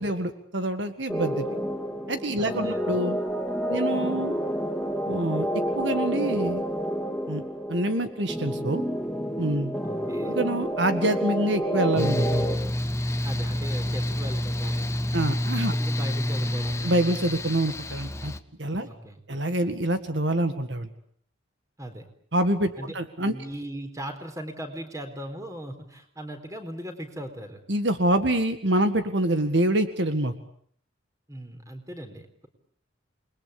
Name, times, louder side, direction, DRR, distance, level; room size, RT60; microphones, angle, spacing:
voice 1, 0.0-1.5 2.1-3.2 3.7-4.4 5.1-5.5 5.8-6.6 7.3-7.4 7.7-8.8 9.4-9.8 10.3-12.5 15.1-15.7 16.8-18.3 18.6-18.9 19.3-20.9 22.3-23.3 27.7-30.3, right 1 dB, 70° right, 9 dB, 1.9 m, -26 dB
sound 1, 1.1-12.6, equal, ahead, 3.4 m, -29 dB
voice 2, 2.4-2.8 9.8-10.4 13.2-14.9 15.7-16.8 18.8-19.2 21.8-22.1 22.8-22.9 23.2-27.6 31.3-32.5, right 1 dB, 15° right, 7 dB, 4.1 m, -38 dB
Mechanical fan, 12.0-18.4, left 1 dB, 15° left, 1.1 m, -28 dB
28.5 x 21.5 x 8.5 m, 0.62 s
head